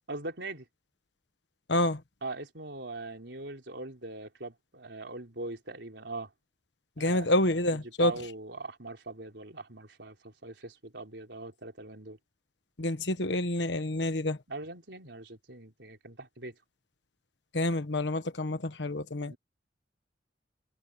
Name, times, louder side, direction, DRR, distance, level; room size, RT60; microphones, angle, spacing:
voice 1, 0.1-0.6 2.2-6.3 7.0-7.3 7.7-12.2 14.5-16.5 19.2-19.4, right 2 dB, 80° right, 4.1 m, -41 dB
voice 2, 1.7-2.0 7.0-8.1 12.8-14.4 17.5-19.3, left 1 dB, 75° left, 1.3 m, -28 dB
head